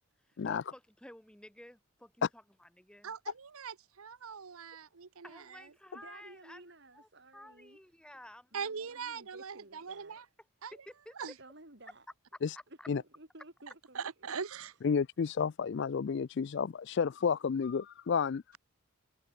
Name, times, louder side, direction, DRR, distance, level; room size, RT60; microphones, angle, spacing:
voice 1, 0.4-3.1 5.2-6.6 6.9-8.5 10.7-11.1 12.8-12.9, left 1 dB, 5° left, 0.9 m, -53 dB
voice 2, 3.0-5.7 8.5-10.2 10.6-10.7 11.1-11.3 13.9-14.7, right 6 dB, 75° right, 0.8 m, -41 dB
voice 3, 5.9-7.8 8.5-10.2 11.4-12.1 12.7-14.3, right 2 dB, 50° right, 3.6 m, -55 dB
voice 4, 14.8-18.4, left 6 dB, 50° left, 0.3 m, -31 dB
head